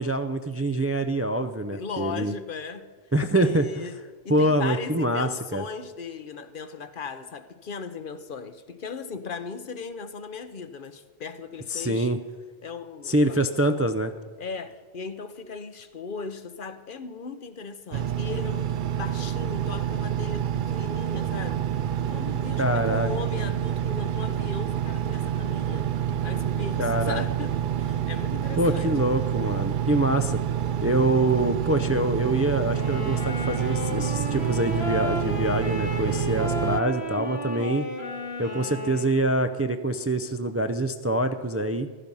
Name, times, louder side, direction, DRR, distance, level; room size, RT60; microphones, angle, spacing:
voice 1, 0.0-2.3 3.1-3.9 4.3-5.6 11.7-12.2 13.1-14.1 22.6-23.1 26.8-27.2 28.6-30.4 30.8-37.9 38.4-41.9, right 1 dB, 20° right, 7 dB, 0.4 m, -25 dB
voice 2, 1.7-2.9 3.3-12.1 12.6-13.4 14.4-21.6 22.0-25.9 26.2-29.1, left 5 dB, 55° left, 11 dB, 0.9 m, -37 dB
Engine, 17.9-36.8, right 10 dB, 60° right, 0.6 m, -28 dB
sound 1, 32.7-39.3, left 2 dB, 90° left, 2.3 m, -33 dB
15.0 x 12.0 x 5.5 m, 1.5 s
omnidirectional pair, 1.0 m